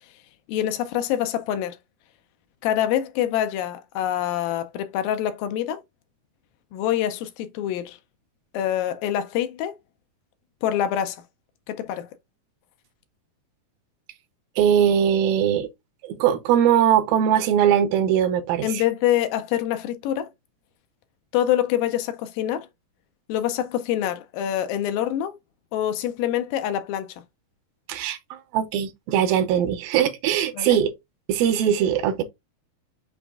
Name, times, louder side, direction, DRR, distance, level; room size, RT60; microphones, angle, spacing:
voice 1, 0.5-1.8 2.6-5.8 6.7-8.0 8.5-9.8 10.6-11.2 11.7-12.1 18.6-20.3 21.3-22.7 23.3-25.4 25.7-27.1 30.6-30.8, left 11 dB, 80° left, 2.2 m, -25 dB
voice 2, 14.6-15.7 16.0-18.8 27.9-30.9 31.3-32.2, right 9 dB, 80° right, 2.3 m, -21 dB
6.0 x 2.5 x 3.4 m
omnidirectional pair, 4.3 m